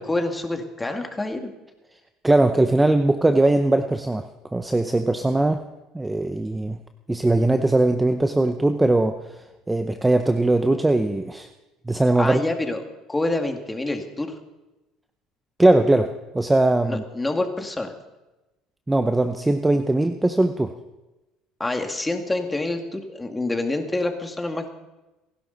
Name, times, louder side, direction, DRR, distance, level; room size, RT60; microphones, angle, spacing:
voice 1, 0.0-1.5 12.2-12.8 13.1-14.3 16.8-17.9 21.6-24.7, left 2 dB, 10° left, 4 dB, 2.1 m, -27 dB
voice 2, 2.2-4.3 4.5-5.6 5.9-6.8 7.1-9.2 9.7-11.5 11.9-12.4 15.6-17.0 18.9-20.7, right 2 dB, 10° right, 7 dB, 0.7 m, -20 dB
29.0 x 11.0 x 4.0 m, 1.0 s
supercardioid pair, 105°, 0 cm